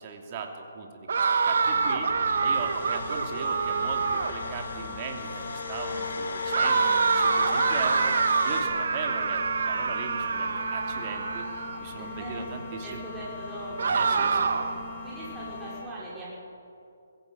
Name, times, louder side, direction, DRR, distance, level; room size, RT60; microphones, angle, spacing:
voice 1, 0.0-2.1 2.4-8.1 8.4-11.4 11.8-13.1 13.8-14.5, right 5 dB, 30° right, 2 dB, 2.9 m, -38 dB
sound 1, 1.1-4.5 6.5-11.8 13.8-14.8, right 5 dB, 65° right, 1.8 m, -26 dB
sound 2, 1.6-15.8, left 3 dB, 40° left, 6.2 m, -40 dB
sound 3, 2.5-8.6, left 4 dB, 75° left, 4.1 m, -35 dB
voice 2, 12.0-12.5 12.8-14.4 15.0-16.4, right 1 dB, 10° right, -8 dB, 5.3 m, -40 dB
21.5 x 14.5 x 9.2 m, 2.6 s
hypercardioid pair, 160°, 0 cm